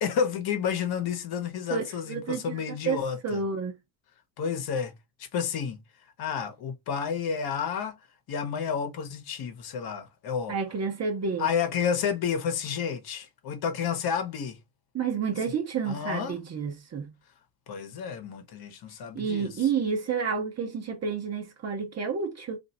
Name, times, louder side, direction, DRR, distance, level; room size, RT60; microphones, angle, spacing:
voice 1, 0.0-3.4 4.4-4.9 5.2-5.8 6.2-8.0 8.3-10.6 11.4-14.6 15.8-16.4 17.7-19.5, left 7 dB, 50° left, 1.1 m, -30 dB
voice 2, 2.1-2.6 2.9-3.0 3.2-3.7 10.5-11.5 14.9-17.1 19.1-22.6, right 6 dB, 35° right, 0.9 m, -30 dB
2.6 x 2.4 x 4.1 m
supercardioid pair, 85°, 47 cm